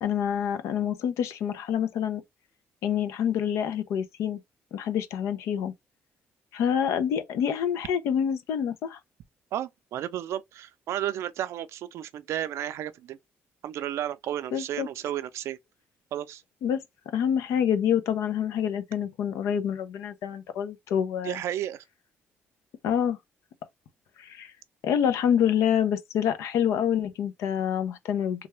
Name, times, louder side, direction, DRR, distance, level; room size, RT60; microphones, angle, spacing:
voice 1, 0.0-2.2 2.8-4.4 4.7-5.7 6.5-9.0 14.5-14.9 16.6-16.8 17.1-21.4 22.8-23.2 24.2-24.5 24.8-28.5, left 8 dB, 85° left, 0.5 m, -27 dB
voice 2, 9.5-13.2 13.6-15.6 16.1-16.4 21.2-21.8, right 11 dB, 75° right, 0.4 m, -33 dB
3.3 x 2.3 x 3.0 m
cardioid pair, 105°, 5 cm